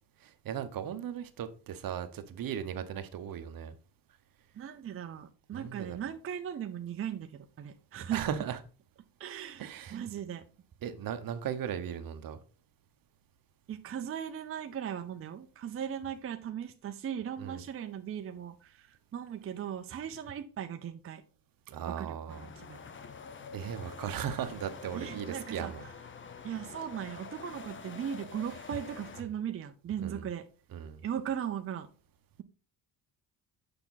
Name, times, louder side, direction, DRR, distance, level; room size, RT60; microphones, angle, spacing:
voice 1, 0.2-3.7 5.5-6.0 8.1-8.6 9.6-10.0 10.8-12.4 17.4-17.6 21.7-22.5 23.5-25.8 30.0-30.2 30.7-31.0, right 9 dB, 60° right, 1.0 m, -37 dB
voice 2, 4.5-8.3 9.2-10.4 13.7-21.2 21.9-22.9 24.9-25.9 26.4-30.5 31.0-31.9, right 9 dB, 35° right, 0.6 m, -38 dB
sound 1, 22.3-29.2, left 5 dB, 30° left, 0.7 m, -47 dB
6.8 x 5.9 x 4.0 m
cardioid pair, 115°, 38 cm